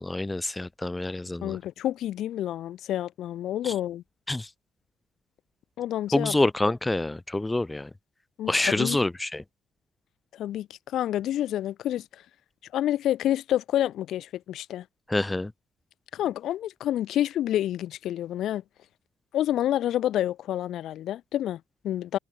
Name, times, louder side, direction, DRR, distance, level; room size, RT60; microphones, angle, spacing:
voice 1, 0.0-1.6 3.6-3.7 4.3-4.5 6.1-7.9 8.5-9.4 15.1-15.5, left 2 dB, 15° left, 1.0 m, -27 dB
voice 2, 1.4-4.0 5.8-6.3 8.4-9.0 10.3-12.2 12.7-14.8 16.1-18.6 19.3-22.2, left 12 dB, 60° left, 1.4 m, -28 dB
hypercardioid pair, 50°, 0 cm